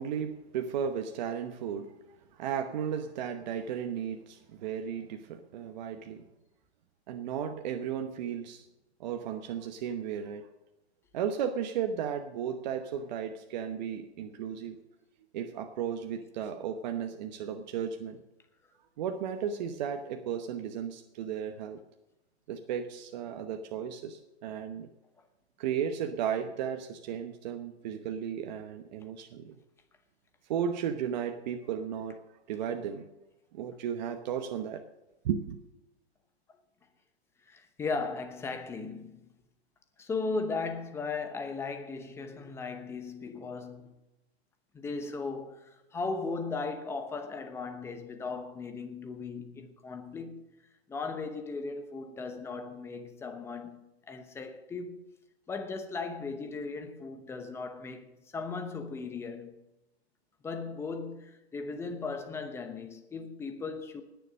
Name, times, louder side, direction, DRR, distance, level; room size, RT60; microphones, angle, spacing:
voice 1, 0.0-2.0 2.3-6.2 7.1-8.6 9.0-10.5 11.1-14.8 15.3-18.2 19.0-21.8 22.5-24.9 25.6-29.5 30.5-32.2 32.5-33.1 33.5-34.8 35.2-35.6, right 8 dB, 40° right, 1.0 m, -34 dB
voice 2, 37.5-39.2 40.0-44.0 44.7-50.4 50.9-55.0 55.5-59.6 60.4-64.0, left 4 dB, 10° left, 0.8 m, -37 dB
19.0 x 7.0 x 6.4 m
hypercardioid pair, 150°, 33 cm